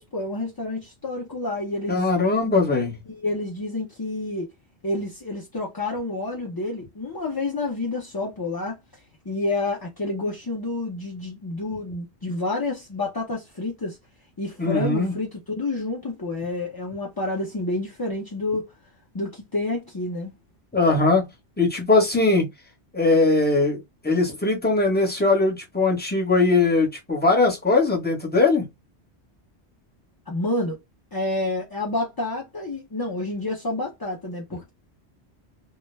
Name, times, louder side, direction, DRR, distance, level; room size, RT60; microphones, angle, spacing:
voice 1, 0.0-2.0 3.1-4.5 4.8-8.8 9.3-14.0 14.4-18.7 19.1-20.3 30.3-30.8 31.1-34.7, left 2 dB, 30° left, 0.4 m, -29 dB
voice 2, 1.9-2.9 14.6-15.1 20.7-21.2 21.6-22.5 22.9-28.6, left 3 dB, 10° left, 0.8 m, -20 dB
2.2 x 2.1 x 3.1 m
omnidirectional pair, 1.1 m